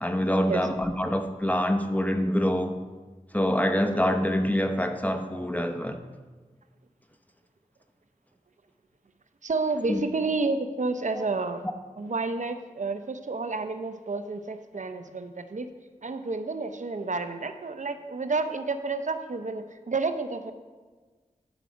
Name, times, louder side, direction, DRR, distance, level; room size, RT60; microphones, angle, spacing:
voice 1, 0.0-2.7 3.3-6.0 9.9-10.0 11.2-11.3, equal, 10° left, 6 dB, 0.7 m, -25 dB
voice 2, 9.4-11.6 12.0-15.7 16.0-20.5, right 3 dB, 60° right, 9 dB, 0.6 m, -30 dB
11.5 x 4.7 x 5.1 m, 1.4 s
wide cardioid pair, 45°, 14 cm